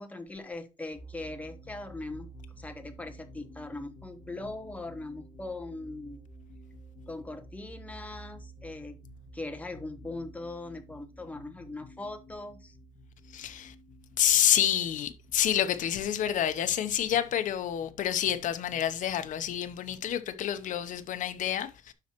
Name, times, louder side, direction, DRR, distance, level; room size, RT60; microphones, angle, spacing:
voice 1, 0.0-2.3 2.6-6.2 7.1-9.0 9.3-12.7, left 2 dB, 10° left, 0.9 m, -40 dB
sound 1, 0.9-20.2, right 1 dB, 25° left, 2.1 m, -51 dB
voice 2, 13.3-13.7 14.2-21.9, left 10 dB, 65° left, 0.8 m, -28 dB
11.5 x 4.3 x 3.0 m
cardioid pair, 175°, 15 cm